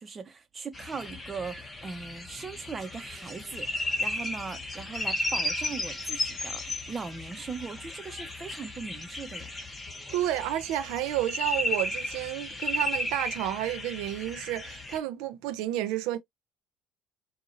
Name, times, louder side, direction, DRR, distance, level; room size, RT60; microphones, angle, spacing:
voice 1, 0.0-9.6, right 5 dB, 25° right, 1.3 m, -39 dB
sound 1, 0.7-15.0, left 1 dB, 20° left, 1.5 m, -34 dB
voice 2, 10.1-16.2, right 13 dB, 85° right, 0.7 m, -31 dB
4.9 x 2.8 x 2.5 m
cardioid pair, 115°, 0 cm